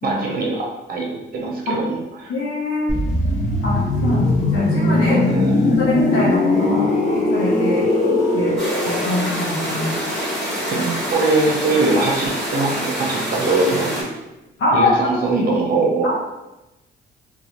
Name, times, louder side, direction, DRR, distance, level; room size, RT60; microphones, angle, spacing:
voice 1, 0.0-2.3 5.0-5.7 10.7-14.1 14.7-16.1, right 3 dB, 45° right, -1 dB, 0.7 m, -22 dB
voice 2, 2.3-2.9 3.6-5.2 5.6-6.9 7.3-7.9 8.3-8.5 8.8-9.9 14.6-15.1 16.0-16.1, left 2 dB, 75° left, -6 dB, 0.7 m, -23 dB
sound 1, 2.9-12.5 12.8-13.0, left 2 dB, 35° left, 0.7 m, -21 dB
sound 2, 8.6-14.0, equal, ahead, 1.1 m, -26 dB
2.8 x 2.2 x 2.5 m, 0.99 s
cardioid pair, 90°, 20 cm